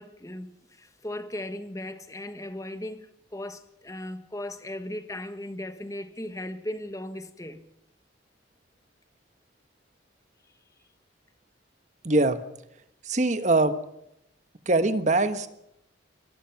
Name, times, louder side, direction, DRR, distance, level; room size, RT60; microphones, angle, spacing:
voice 1, 0.0-7.6, left 1 dB, 15° left, 1.3 m, -37 dB
voice 2, 12.0-12.4 13.0-13.8 14.7-15.5, right 2 dB, 40° right, 1.3 m, -22 dB
25.0 x 19.0 x 5.9 m
head